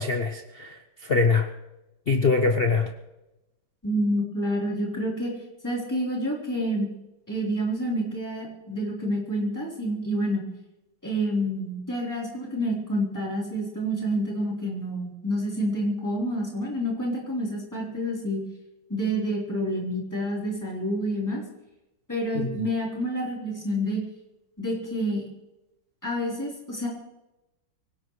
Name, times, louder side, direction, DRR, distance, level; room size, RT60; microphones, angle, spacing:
voice 1, 0.0-1.5 2.1-2.9 22.3-22.5, left 4 dB, 70° left, 5 dB, 0.5 m, -23 dB
voice 2, 3.8-5.4 5.6-6.9 7.3-10.4 11.0-18.4 18.9-21.4 22.1-24.0 24.6-25.2 26.0-26.9, equal, 10° left, -4 dB, 3.8 m, -28 dB
24.5 x 17.0 x 3.2 m, 0.98 s
omnidirectional pair, 2.2 m